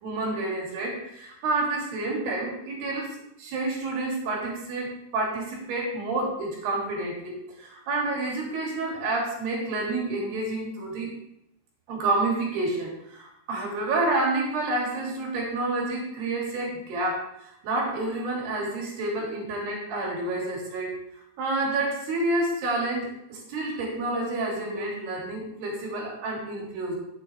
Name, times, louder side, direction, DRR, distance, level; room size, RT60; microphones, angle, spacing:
voice 1, 0.0-11.1 11.9-20.9 21.4-27.0, right 2 dB, 60° right, -2 dB, 4.6 m, -29 dB
11.0 x 8.7 x 3.4 m, 0.81 s
omnidirectional pair, 5.6 m